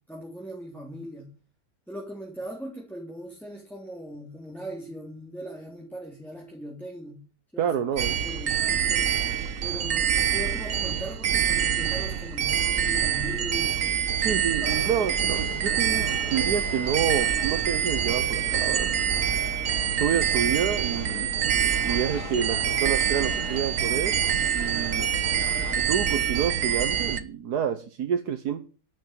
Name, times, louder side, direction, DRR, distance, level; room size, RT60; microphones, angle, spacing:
voice 1, 0.1-1.3 1.9-7.2 7.5-7.7 8.2-9.2 9.6-13.9, equal, ahead, 3.9 m, -39 dB
voice 2, 7.6-8.1 14.2-18.9 20.0-21.3 21.8-24.1 24.5-25.1 25.7-28.6, right 8 dB, 80° right, 1.6 m, -28 dB
sound 1, 8.0-27.2, right 8 dB, 60° right, 1.4 m, -26 dB
sound 2, 14.6-25.8, left 5 dB, 80° left, 2.0 m, -41 dB
12.0 x 7.3 x 9.3 m
omnidirectional pair, 1.6 m